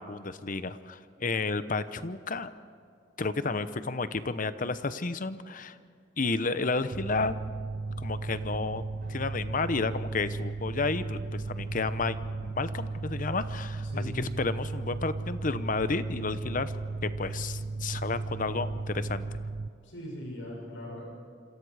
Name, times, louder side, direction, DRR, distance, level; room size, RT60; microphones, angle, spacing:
voice 1, 0.0-2.5 3.2-5.8 6.2-7.4 8.0-8.8 9.1-12.2 12.4-16.7 17.0-19.4, left 3 dB, 45° left, 13 dB, 0.9 m, -31 dB
Mechanical fan, 6.9-19.7, right 3 dB, 90° right, 0.7 m, -35 dB
sound 1, 8.4-15.1 15.6-16.0 16.7-17.1, right 1 dB, 50° right, 7.8 m, -60 dB
voice 2, 13.8-14.2 19.8-21.0, equal, 90° left, -1 dB, 7.1 m, -40 dB
27.5 x 26.5 x 4.9 m, 2.3 s
head